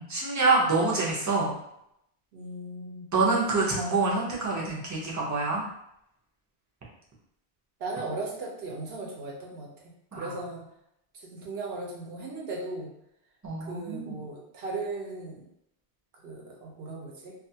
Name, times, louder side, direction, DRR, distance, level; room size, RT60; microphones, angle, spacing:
voice 1, 0.0-1.5 3.1-5.6 10.1-10.4 13.4-14.1, right 3 dB, 25° right, -4 dB, 0.4 m, -26 dB
voice 2, 0.6-1.0 2.3-3.1 7.8-10.6 11.1-12.9 13.6-15.4 16.2-17.3, right 3 dB, 70° right, -2 dB, 0.8 m, -37 dB
2.4 x 2.3 x 2.7 m, 0.79 s
omnidirectional pair, 1.1 m